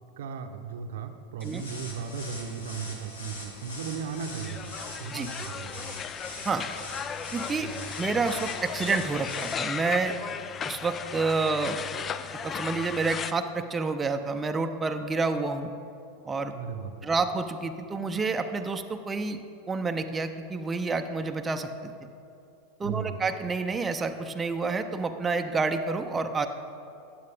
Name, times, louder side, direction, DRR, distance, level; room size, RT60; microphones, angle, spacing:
voice 1, 0.2-4.7 5.0-5.8 7.6-7.8 16.5-17.1 22.8-23.2, right 6 dB, 65° right, 7 dB, 0.8 m, -36 dB
sound 1, 1.4-9.5, left 2 dB, 75° left, 1.9 m, -42 dB
sound 2, 4.1-13.3, left 7 dB, 30° left, 0.5 m, -36 dB
voice 2, 7.3-7.7 8.0-10.1 10.6-11.8 12.4-15.7 16.3-16.5 17.0-19.4 19.7-21.9 22.8-26.5, right 4 dB, 20° right, 6 dB, 0.6 m, -29 dB
14.5 x 9.5 x 3.5 m, 2.6 s
figure-of-eight pair, 90°, 0 cm